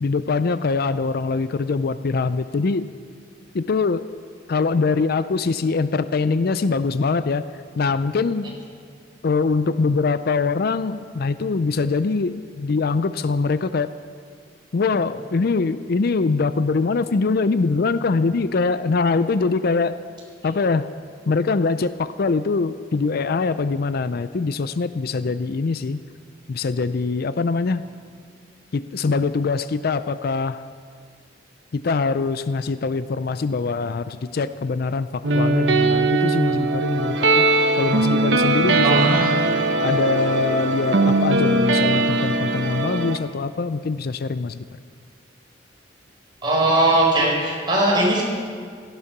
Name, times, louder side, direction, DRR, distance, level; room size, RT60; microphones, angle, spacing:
voice 1, 0.0-2.9 3.5-4.1 4.5-7.4 7.8-8.5 9.2-13.9 14.7-20.0 20.4-20.9 21.3-26.0 26.5-27.8 28.7-30.6 31.7-37.4 37.8-39.0 39.8-44.7, left 4 dB, 55° left, 13 dB, 0.4 m, -23 dB
sound 1, 35.2-43.2, right 2 dB, 70° right, 1.1 m, -20 dB
voice 2, 38.8-39.4 46.4-48.2, right 1 dB, 25° right, -3 dB, 4.5 m, -19 dB
17.0 x 14.0 x 6.0 m, 2.1 s
head